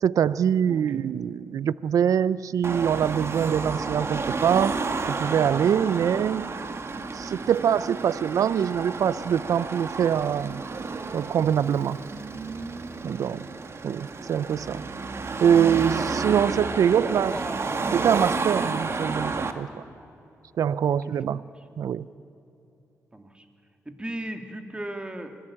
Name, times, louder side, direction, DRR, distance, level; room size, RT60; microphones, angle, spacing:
voice 1, 0.0-4.7 5.1-6.5 7.1-10.6 11.1-12.0 13.0-13.5 13.8-14.8 15.4-17.4 17.9-19.8 20.6-21.4 21.8-22.1, right 8 dB, 70° right, 19 dB, 0.5 m, -24 dB
Car passing by / Traffic noise roadway noise / Engine, 2.6-19.5, right 4 dB, 45° right, 1.7 m, -31 dB
voice 2, 15.7-16.1 16.8-17.8 18.2-18.3 21.3-21.5 23.1-23.4 23.9-25.4, right 1 dB, 15° right, 6 dB, 2.6 m, -37 dB
24.5 x 17.5 x 8.7 m, 2.9 s
cardioid pair, 60°, 6 cm